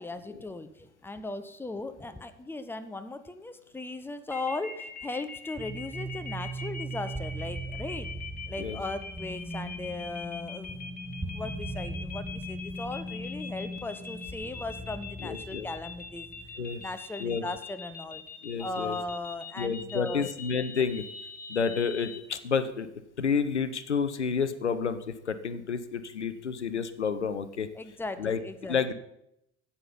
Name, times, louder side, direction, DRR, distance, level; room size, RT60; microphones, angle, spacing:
voice 1, 0.0-8.1 8.5-10.7 11.3-16.3 16.8-18.2 18.6-20.3 27.7-28.8, left 2 dB, 5° left, 10 dB, 0.8 m, -37 dB
sound 1, 4.3-22.2, left 5 dB, 25° left, 1.3 m, -42 dB
sound 2, 5.6-16.9, right 1 dB, 10° right, 1.3 m, -39 dB
voice 2, 15.2-15.7 16.6-16.8 17.2-17.4 18.4-19.0 19.6-21.0 21.5-22.9 23.2-27.7 28.2-28.4 28.7-28.9, left 6 dB, 85° left, 12 dB, 0.5 m, -30 dB
9.6 x 8.0 x 5.5 m, 0.80 s
figure-of-eight pair, 55°, 33 cm